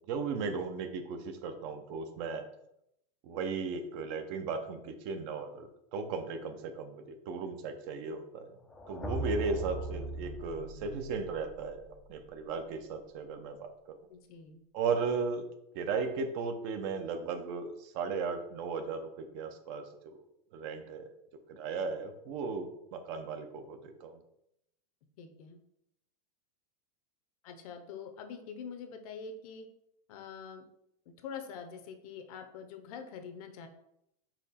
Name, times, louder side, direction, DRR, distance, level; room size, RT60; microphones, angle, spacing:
voice 1, 0.1-2.5 3.2-8.6 8.9-13.7 14.7-15.4 15.7-20.1 20.5-21.1 21.5-24.2, right 4 dB, 45° right, 7 dB, 0.6 m, -36 dB
sound 1, 8.7-12.7, right 2 dB, 5° left, 0.4 m, -40 dB
voice 2, 14.1-14.6 25.2-25.6 27.4-29.7 30.1-30.6 31.2-33.7, left 6 dB, 60° left, 7 dB, 0.7 m, -45 dB
4.2 x 3.0 x 4.2 m, 0.80 s
supercardioid pair, 150°, 21 cm